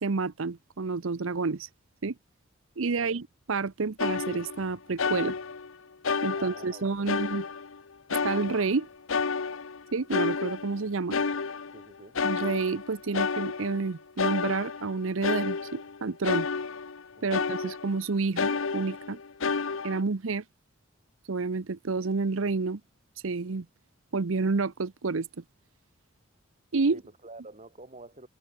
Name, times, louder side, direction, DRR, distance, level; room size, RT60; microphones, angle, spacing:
voice 1, 0.0-1.7 2.0-2.1 2.8-3.2 3.5-5.4 6.2-7.4 8.2-8.9 9.9-11.2 12.2-16.5 17.2-19.2 19.8-20.4 21.3-22.8 23.2-23.7 24.1-25.3 26.7-27.0, right 4 dB, 70° right, 0.7 m, -29 dB
voice 2, 2.9-3.2 6.3-7.3 11.7-12.2 17.2-17.5 26.9-28.3, right 2 dB, 35° right, 6.6 m, -49 dB
sound 1, 4.0-4.7 5.0-5.7 6.0-7.8 8.1-8.8 9.1-11.9 12.2-13.9 14.2-17.0 17.3-18.0 18.4-20.0, left 5 dB, 75° left, 0.9 m, -31 dB
head